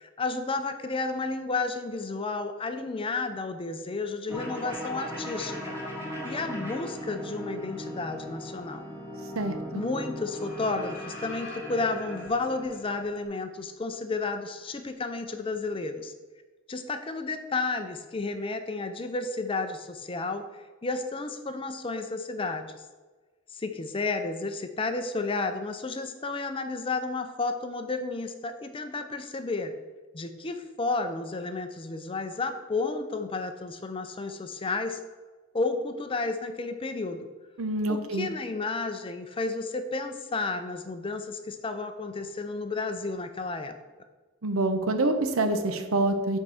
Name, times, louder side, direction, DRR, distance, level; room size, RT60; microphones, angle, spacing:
voice 1, 0.0-5.8 6.2-8.8 9.7-16.1 16.7-22.7 23.5-29.7 30.1-35.0 35.5-37.3 37.9-43.7, left 3 dB, 25° left, 8 dB, 0.5 m, -32 dB
sound 1, 4.3-13.3, equal, 15° right, 2.0 m, -38 dB
voice 2, 9.3-9.8 37.6-38.3 44.4-46.4, right 2 dB, 80° right, 7 dB, 0.8 m, -26 dB
7.6 x 4.6 x 4.9 m, 1.3 s
head